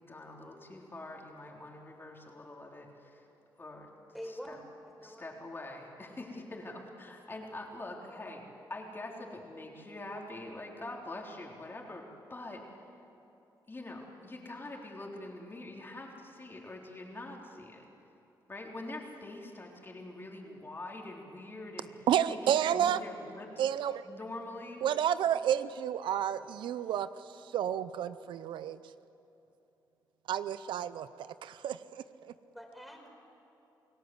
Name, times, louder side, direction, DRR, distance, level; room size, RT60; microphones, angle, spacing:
voice 1, 0.0-3.3 3.6-3.9 4.2-4.6 5.0-12.6 13.7-17.8 18.5-23.7 24.0-24.8, left 2 dB, 25° left, 0 dB, 3.7 m, -44 dB
voice 2, 4.1-4.6 5.0-5.2 32.5-33.1, equal, ahead, 2 dB, 4.6 m, -44 dB
voice 3, 22.1-23.0 23.6-24.0 24.8-27.1 27.5-28.8 30.3-32.0, right 10 dB, 80° right, 14 dB, 0.6 m, -30 dB
29.0 x 17.5 x 7.9 m, 3.0 s
cardioid pair, 85°, 8 cm